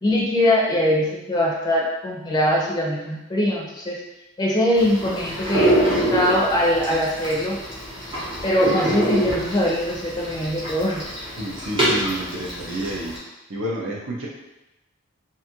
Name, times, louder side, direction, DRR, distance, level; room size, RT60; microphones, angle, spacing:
voice 1, 0.0-4.0 4.4-7.6 8.4-11.1, left 1 dB, 20° left, -3 dB, 0.4 m, -22 dB
sound 1, 4.7-13.2, right 1 dB, 25° right, 0.8 m, -25 dB
voice 2, 11.4-13.1 13.5-14.3, right 1 dB, 65° right, -4 dB, 0.7 m, -29 dB
2.6 x 2.4 x 2.8 m, 0.97 s
head